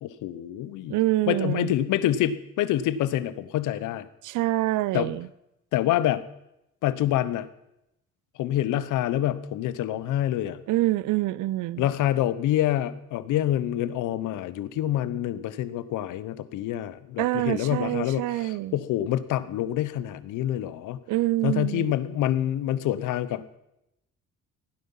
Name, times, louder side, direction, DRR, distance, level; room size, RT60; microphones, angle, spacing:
voice 1, 0.0-1.0 1.3-4.1 4.9-5.1 5.7-6.3 6.8-7.5 8.4-10.6 11.8-21.0 21.4-23.6, left 12 dB, 90° left, 15 dB, 0.8 m, -27 dB
voice 2, 0.9-1.7 4.2-5.3 10.7-11.9 17.2-18.8 21.1-21.9, right 17 dB, 85° right, 20 dB, 0.5 m, -26 dB
16.0 x 9.5 x 5.5 m, 0.85 s
cardioid pair, 90°, 30 cm